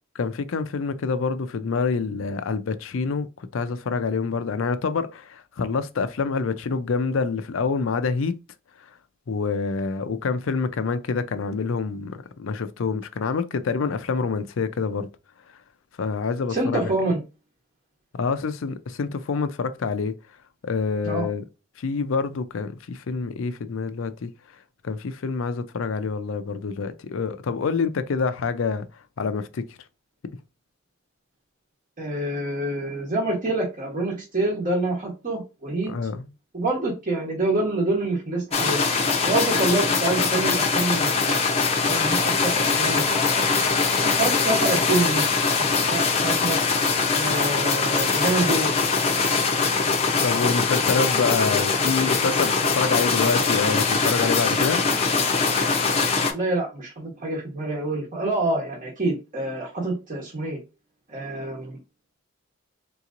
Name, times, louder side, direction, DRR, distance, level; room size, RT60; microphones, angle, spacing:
voice 1, 0.1-3.3 3.5-8.3 9.3-15.1 16.0-16.9 18.1-20.1 20.6-21.4 21.8-24.3 24.8-28.9 29.2-29.6 35.9-36.3 50.2-54.8, left 4 dB, 70° left, 0.4 m, -26 dB
voice 2, 16.5-17.2 21.0-21.3 32.0-35.9 36.5-38.8 39.2-41.5 41.8-43.4 44.0-45.2 45.6-46.6 47.1-48.7 56.2-60.6 61.1-61.8, right 2 dB, 40° right, 1.1 m, -26 dB
sound 1, 38.5-56.3, left 4 dB, 30° left, 0.6 m, -22 dB
3.8 x 2.9 x 2.5 m
head